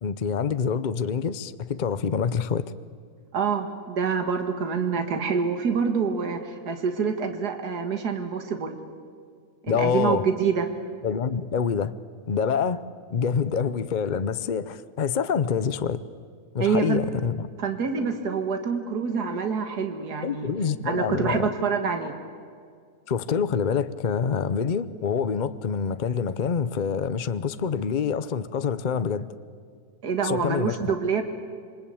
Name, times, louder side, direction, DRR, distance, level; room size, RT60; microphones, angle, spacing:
voice 1, 0.0-2.7 9.7-10.3 11.0-11.9 12.3-12.8 13.1-16.0 16.5-17.5 20.2-21.5 23.1-29.3 30.2-30.8, left 6 dB, 40° left, 0.7 m, -26 dB
voice 2, 3.3-8.8 9.6-10.7 16.6-17.0 17.6-20.5 20.8-22.1 30.0-31.2, right 6 dB, 80° right, 2.2 m, -26 dB
27.5 x 24.0 x 8.7 m
omnidirectional pair, 1.7 m